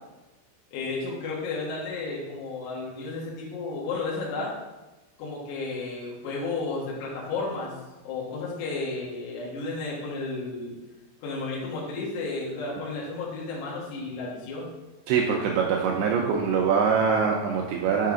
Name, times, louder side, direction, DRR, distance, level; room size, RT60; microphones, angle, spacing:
voice 1, 0.7-4.5 5.2-7.7 8.0-10.8 11.2-14.7, left 3 dB, 70° left, -6 dB, 3.3 m, -32 dB
voice 2, 15.1-18.1, right 6 dB, 90° right, 1 dB, 2.3 m, -23 dB
7.4 x 5.5 x 3.7 m, 1.1 s
omnidirectional pair, 5.2 m